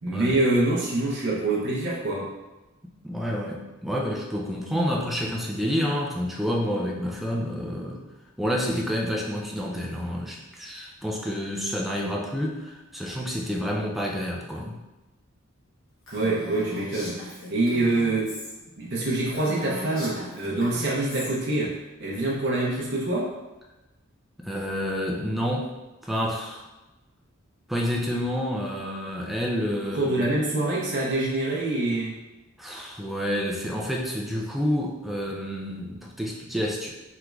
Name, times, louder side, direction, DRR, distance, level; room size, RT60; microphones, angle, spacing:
voice 1, 0.0-2.3 16.1-18.4 18.8-23.3 29.9-32.1, right 2 dB, 55° right, -6 dB, 0.6 m, -25 dB
voice 2, 3.0-8.0 8.4-14.8 24.4-25.8 26.0-26.6 27.7-30.3 32.6-36.9, equal, ahead, -2 dB, 0.3 m, -29 dB
Female speech woman speaking, 16.1-18.5 18.9-19.0 19.3-21.3, left 1 dB, 65° left, 1.1 m, -39 dB
3.6 x 3.0 x 2.3 m, 1.1 s
head